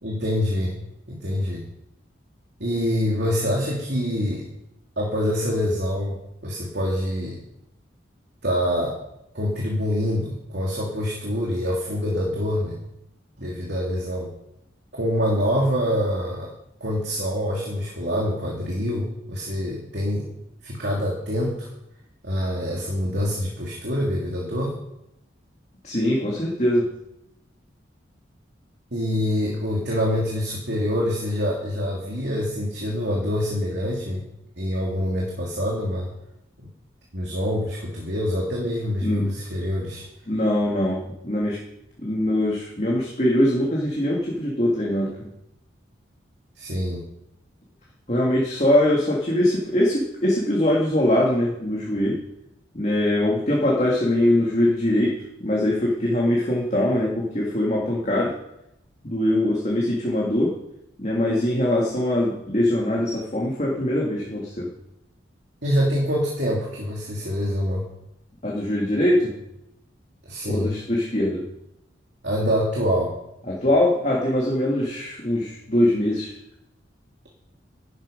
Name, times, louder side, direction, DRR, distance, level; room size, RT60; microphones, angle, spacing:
voice 1, 0.0-0.8 1.1-1.6 2.6-4.5 5.0-7.4 8.4-9.0 9.3-12.8 13.4-14.3 14.9-16.5 16.8-20.3 20.6-21.7 22.2-24.7 28.9-34.2 34.6-36.1 37.1-40.0 46.6-47.0 65.6-67.8 70.3-70.8 72.2-73.1, equal, 60° right, -3 dB, 2.8 m, -25 dB
voice 2, 25.8-26.9 39.0-39.3 40.3-41.6 42.0-45.1 48.1-52.2 52.7-58.3 59.0-60.6 61.0-64.7 68.4-69.3 70.4-71.4 73.5-76.3, left 1 dB, 35° left, -3 dB, 2.2 m, -22 dB
13.5 x 12.0 x 5.2 m, 0.83 s
head